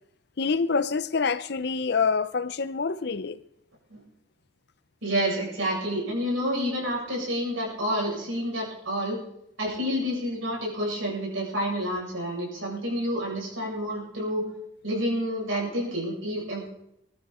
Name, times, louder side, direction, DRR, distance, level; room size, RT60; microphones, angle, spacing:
voice 1, 0.4-3.4, left 5 dB, 55° left, 0.6 m, -26 dB
voice 2, 5.0-9.2 9.6-14.5 14.8-16.6, equal, 80° right, 7.9 m, -29 dB
23.0 x 12.0 x 4.4 m
head